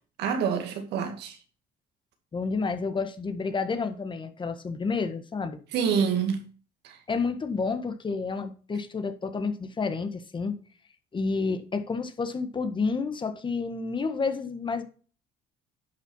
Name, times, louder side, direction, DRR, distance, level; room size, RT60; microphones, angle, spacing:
voice 1, 0.2-1.4 5.7-6.5 6.8-7.0, right 7 dB, 80° right, 2.2 m, -27 dB
voice 2, 2.3-5.6 7.1-10.6 11.1-14.8, left 4 dB, 30° left, 1.5 m, -30 dB
11.0 x 5.9 x 5.5 m
cardioid pair, 110°, 17 cm